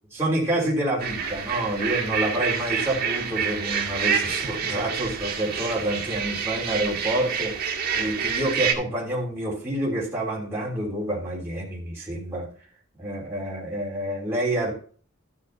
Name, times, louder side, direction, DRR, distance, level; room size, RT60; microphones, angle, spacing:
voice 1, 0.1-12.5 13.0-14.7, right 1 dB, 10° right, -5 dB, 3.2 m, -28 dB
sound 1, 1.0-8.7, right 6 dB, 50° right, 1.7 m, -28 dB
13.0 x 8.6 x 2.8 m, 0.42 s
head